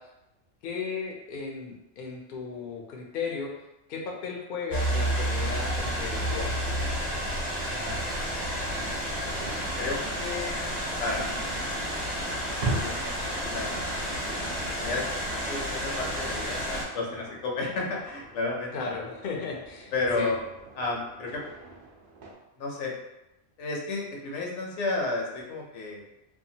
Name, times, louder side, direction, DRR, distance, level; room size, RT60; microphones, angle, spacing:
voice 1, 0.6-3.5 3.9-6.5 18.7-20.3, left 5 dB, 60° left, -1 dB, 0.6 m, -35 dB
sound 1, 4.7-16.8, equal, 35° right, 1.0 m, -30 dB
sound 2, 8.7-22.3, right 2 dB, 60° right, 0.6 m, -41 dB
voice 2, 9.8-11.6 12.7-13.9 14.6-18.7 19.9-20.5 20.8-21.4 22.6-22.9 23.6-26.0, left 3 dB, 75° left, -1 dB, 1.0 m, -32 dB
2.7 x 2.2 x 2.7 m, 0.93 s
omnidirectional pair, 1.2 m